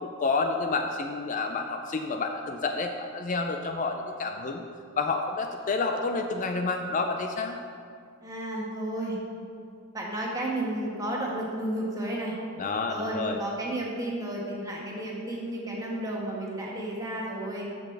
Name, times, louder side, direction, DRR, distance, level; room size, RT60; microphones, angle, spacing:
voice 1, 0.0-4.6 5.0-7.6 12.6-13.4, left 3 dB, 35° left, 5 dB, 0.4 m, -29 dB
voice 2, 8.2-9.2 9.9-12.4 12.9-17.6, right 1 dB, 15° right, -3 dB, 1.4 m, -32 dB
13.0 x 6.1 x 3.3 m, 2.4 s
head